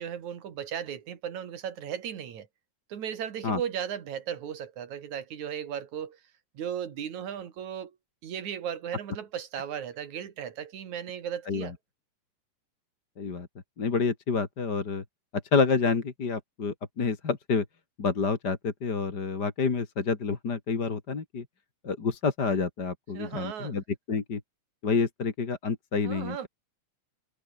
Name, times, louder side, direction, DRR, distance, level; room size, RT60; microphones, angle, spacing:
voice 1, 0.0-2.5 2.9-6.2 6.6-7.9 8.2-11.7 23.1-23.8 26.0-26.5, right 9 dB, 75° right, 3.7 m, -36 dB
voice 2, 13.2-13.5 13.8-15.0 15.5-17.6 18.0-21.4 21.8-24.4 24.8-26.5, left 4 dB, 35° left, 2.9 m, -28 dB
omnidirectional pair, 3.3 m